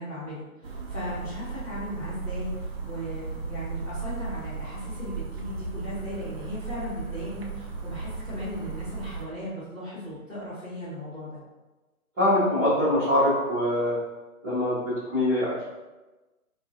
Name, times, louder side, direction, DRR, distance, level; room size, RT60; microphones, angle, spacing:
voice 1, 0.0-11.4, equal, 5° left, -13 dB, 1.1 m, -37 dB
sound 1, 0.6-9.2, right 4 dB, 45° right, 0.5 m, -36 dB
voice 2, 12.2-14.0 14.4-15.6, left 1 dB, 10° right, -16 dB, 0.7 m, -23 dB
4.5 x 2.4 x 2.8 m, 1.1 s
hypercardioid pair, 150°, 45 cm